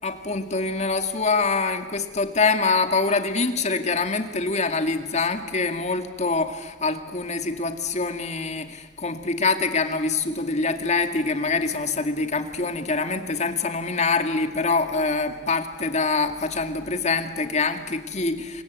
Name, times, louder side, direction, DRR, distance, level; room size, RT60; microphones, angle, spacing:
voice 1, 0.0-18.6, left 3 dB, 40° left, 7 dB, 2.2 m, -25 dB
29.0 x 23.5 x 8.3 m, 1.3 s
head